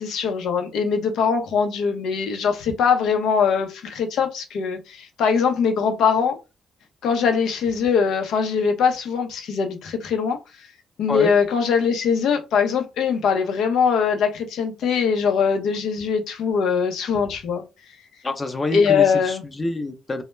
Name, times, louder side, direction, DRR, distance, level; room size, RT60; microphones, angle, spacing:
voice 1, 0.0-6.4 7.0-10.4 11.0-17.6 18.7-19.4, left 6 dB, 75° left, 0.6 m, -21 dB
voice 2, 18.2-20.2, left 2 dB, 25° left, 0.5 m, -27 dB
2.2 x 2.0 x 3.1 m
cardioid pair, 90°, 0 cm